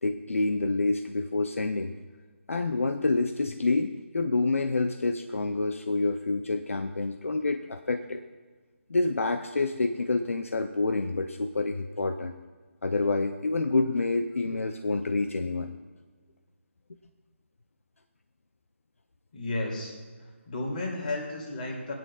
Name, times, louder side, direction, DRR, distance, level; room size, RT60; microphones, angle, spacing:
voice 1, 0.0-1.9 2.5-8.2 8.9-12.3 12.8-15.7, left 3 dB, 80° left, 7 dB, 0.6 m, -28 dB
voice 2, 19.3-19.9 20.5-21.9, left 2 dB, 40° left, -1 dB, 2.9 m, -32 dB
18.5 x 9.4 x 2.4 m, 1.4 s
figure-of-eight pair, 155°, 7 cm